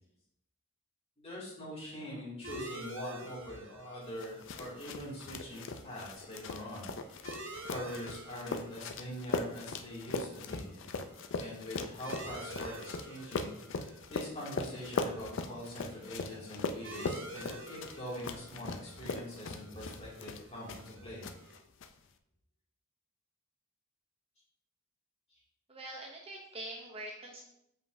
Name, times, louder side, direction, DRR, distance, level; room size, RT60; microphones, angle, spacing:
voice 1, 1.2-6.9 7.6-10.7 11.4-21.3, equal, 25° left, -6 dB, 2.3 m, -43 dB
sound 1, 2.4-21.6, right 1 dB, 60° right, 0.9 m, -50 dB
sound 2, 4.2-20.9 21.2-21.9, left 3 dB, 55° left, 0.4 m, -40 dB
voice 2, 25.7-27.4, right 1 dB, 25° right, 0 dB, 0.6 m, -44 dB
7.2 x 5.3 x 2.6 m, 0.79 s
head